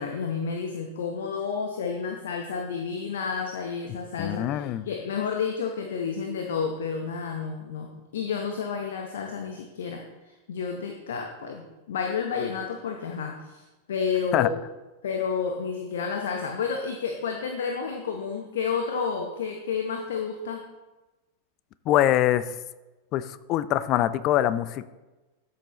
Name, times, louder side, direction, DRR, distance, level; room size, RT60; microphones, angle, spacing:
voice 1, 0.0-14.5 15.0-20.6, left 6 dB, 60° left, 3 dB, 0.9 m, -31 dB
voice 2, 4.2-4.8 14.3-14.5 21.9-22.5 23.1-24.8, left 13 dB, 40° left, 15 dB, 0.5 m, -23 dB
13.0 x 6.7 x 3.1 m, 1.1 s
figure-of-eight pair, 90°, 0 cm